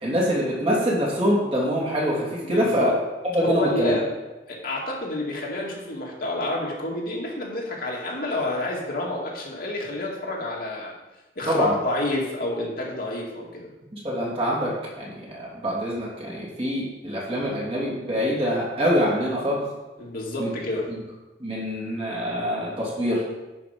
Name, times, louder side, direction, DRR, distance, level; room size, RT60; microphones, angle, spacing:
voice 1, 0.0-2.9 3.3-4.0 11.5-11.7 13.9-19.6 20.4-20.5 20.9-21.0 21.4-23.2, equal, 30° right, -5 dB, 2.8 m, -25 dB
voice 2, 2.4-3.0 3.4-4.0 4.5-10.9 11.4-13.7 20.0-20.9, left 2 dB, 55° left, -2 dB, 2.2 m, -29 dB
10.5 x 5.8 x 5.2 m, 1.1 s
head